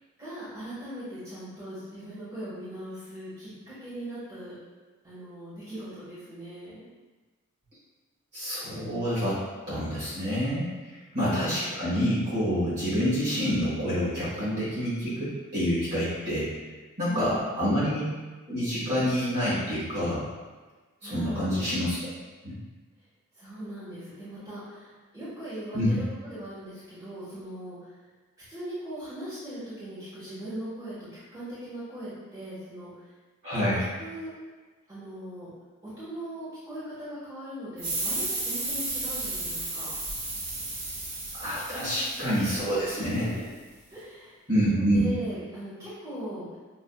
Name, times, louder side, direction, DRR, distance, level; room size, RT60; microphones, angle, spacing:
voice 1, 0.2-4.5 5.0-6.8 11.2-11.7 17.1-17.7 21.0-21.5 23.3-27.9 28.5-33.1 34.0-34.3 34.9-35.5 35.8-39.9 41.7-42.2 42.9-43.4 43.9-46.6, right 1 dB, 15° right, -13 dB, 1.4 m, -39 dB
voice 2, 8.3-9.4 9.7-10.7 11.1-16.5 17.0-18.0 18.5-20.2 21.0-22.0 22.4-22.6 25.7-26.0 33.4-33.9 41.3-43.3 44.5-45.0, equal, 50° right, -11 dB, 1.4 m, -27 dB
sound 1, 37.8-43.1, right 2 dB, 85° right, 1.4 m, -33 dB
6.1 x 2.6 x 2.3 m, 1.3 s
head